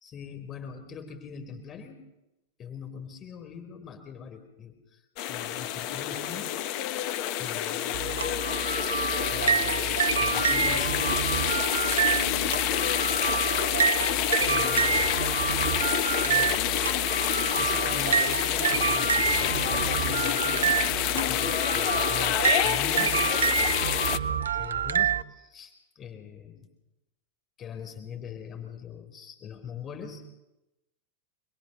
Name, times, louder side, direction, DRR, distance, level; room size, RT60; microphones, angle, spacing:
voice 1, 0.0-2.1 2.6-5.0 5.3-6.5 7.4-8.3 9.3-11.1 14.4-15.1 15.7-16.6 17.5-20.8 21.1-26.7 27.6-30.2, left 6 dB, 30° left, 7 dB, 3.9 m, -42 dB
sound 1, 5.2-24.2, left 11 dB, 45° left, 1.3 m, -27 dB
sound 2, 7.9-25.2, right 7 dB, 70° right, 0.8 m, -28 dB
voice 2, 10.0-12.9 20.7-21.0, left 2 dB, 70° left, 4 dB, 7.0 m, -39 dB
27.0 x 22.0 x 6.7 m, 0.94 s
figure-of-eight pair, 90°, 0 cm